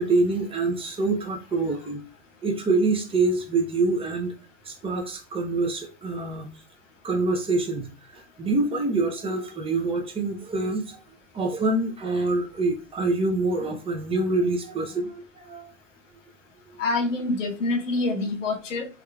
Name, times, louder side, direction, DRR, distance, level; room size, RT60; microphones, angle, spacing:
voice 1, 0.0-2.0 2.4-4.3 4.6-6.5 7.0-7.9 8.1-11.0 11.3-15.7, right 3 dB, 15° right, 2 dB, 0.6 m, -26 dB
voice 2, 16.8-18.9, left 2 dB, 80° left, 3 dB, 1.0 m, -26 dB
3.5 x 3.1 x 2.3 m, 0.35 s
hypercardioid pair, 100°, 37 cm